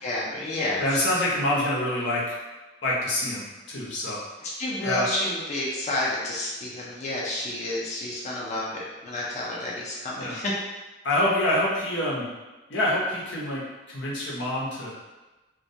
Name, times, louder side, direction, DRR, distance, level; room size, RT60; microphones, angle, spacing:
voice 1, 0.0-0.8 4.4-10.5, left 1 dB, 40° left, -5 dB, 0.4 m, -30 dB
voice 2, 0.8-2.2 2.8-4.2 4.8-5.1 10.2-10.4 11.0-12.3 12.7-14.9, left 1 dB, 90° left, -6 dB, 0.7 m, -26 dB
2.2 x 2.1 x 2.6 m, 1.1 s
head